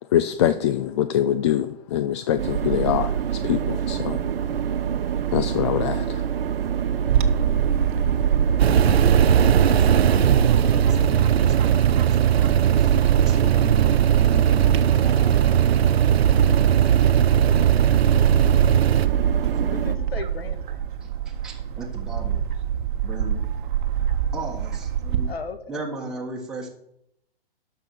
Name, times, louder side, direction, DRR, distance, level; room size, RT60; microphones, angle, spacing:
voice 1, 0.0-4.3 5.3-6.3, left 11 dB, 30° left, 12 dB, 0.4 m, -24 dB
sound 1, 2.4-20.0, right 8 dB, 70° right, 1.0 m, -26 dB
Bird / Wind, 7.1-25.3, right 8 dB, 55° right, 1.1 m, -24 dB
sound 2, 8.6-19.1, right 9 dB, 90° right, 0.6 m, -20 dB
voice 2, 8.8-12.2 12.7-13.0 13.2-15.2 19.6-19.7 21.0-22.4 23.0-23.4 24.3-25.3 25.7-26.7, right 2 dB, ahead, -3 dB, 1.5 m, -37 dB
voice 3, 14.9-15.5 19.7-20.8 25.2-25.8, left 5 dB, 80° left, 11 dB, 1.6 m, -37 dB
12.5 x 5.7 x 6.4 m, 0.77 s
hypercardioid pair, 140°, 30 cm